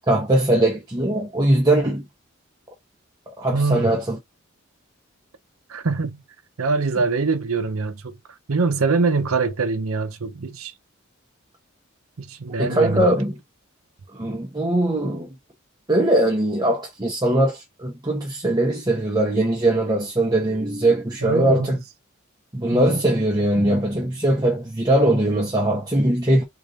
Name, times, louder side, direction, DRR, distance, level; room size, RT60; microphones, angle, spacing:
voice 1, 0.1-2.1 3.4-4.2 12.6-13.3 14.1-15.3 15.9-21.8 22.5-26.4, right 1 dB, 20° right, 0.9 m, -20 dB
voice 2, 3.5-3.9 5.7-6.2 6.6-8.2 8.5-10.7 12.2-13.1 21.2-21.7 22.7-22.9, right 4 dB, 85° right, 0.7 m, -23 dB
3.8 x 3.5 x 2.5 m
head